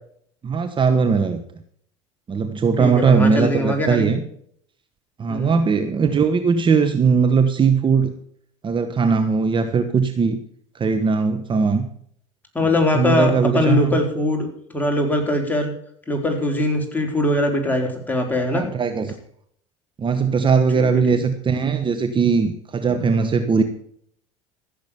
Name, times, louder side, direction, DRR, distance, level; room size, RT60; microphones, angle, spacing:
voice 1, 0.4-1.4 2.3-4.2 5.2-8.1 8.6-10.4 10.7-11.9 12.9-14.0 18.5-19.1 20.0-23.6, right 5 dB, 30° right, 8 dB, 1.2 m, -19 dB
voice 2, 2.8-4.2 5.3-5.6 12.5-14.5 14.7-15.7 16.1-18.6 20.8-21.1 22.9-23.0, left 1 dB, 10° left, 1 dB, 4.3 m, -21 dB
15.0 x 7.4 x 7.1 m, 0.64 s
hypercardioid pair, 80°, 16 cm